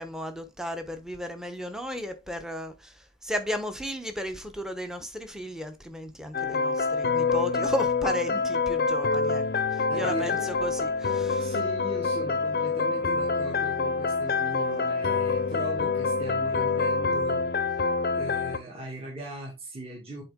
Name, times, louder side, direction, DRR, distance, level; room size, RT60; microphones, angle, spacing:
voice 1, 0.0-9.4 9.7-11.6, equal, 5° right, 0.8 m, -34 dB
sound 1, 6.3-18.6, left 4 dB, 50° left, 0.5 m, -26 dB
voice 2, 9.9-10.5 11.4-17.5 18.1-20.2, equal, 30° right, 1.9 m, -39 dB
7.6 x 4.4 x 3.6 m
head